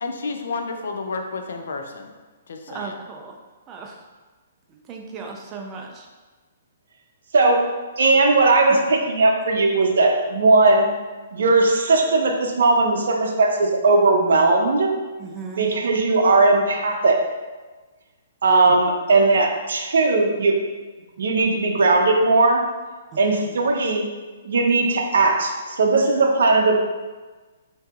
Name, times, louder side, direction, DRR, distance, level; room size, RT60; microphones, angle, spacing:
voice 1, 0.0-2.1 2.5-3.0, left 4 dB, 75° left, 5 dB, 0.4 m, -31 dB
voice 2, 2.7-3.4 3.7-4.0 4.7-6.0 8.7-8.8 15.2-15.7 18.7-18.8 23.1-23.6, right 4 dB, 25° right, 1 dB, 0.5 m, -36 dB
voice 3, 7.3-7.7 8.0-10.9 11.3-14.9 15.6-17.2 18.4-20.6 21.2-22.7 23.2-24.0 24.4-26.8, right 3 dB, 75° right, 2 dB, 0.5 m, -18 dB
4.4 x 2.7 x 2.4 m, 1.3 s
hypercardioid pair, 145°, 0 cm